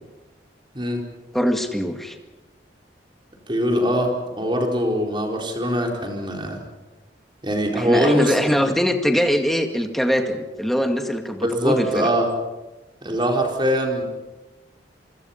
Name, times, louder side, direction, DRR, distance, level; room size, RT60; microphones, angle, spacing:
voice 1, 1.3-2.2 7.7-12.1 13.1-13.2, equal, ahead, 4 dB, 2.1 m, -22 dB
voice 2, 3.5-6.6 7.4-8.3 11.4-12.3 13.0-14.0, equal, 25° right, 1 dB, 4.4 m, -22 dB
27.5 x 25.0 x 5.8 m, 1.1 s
head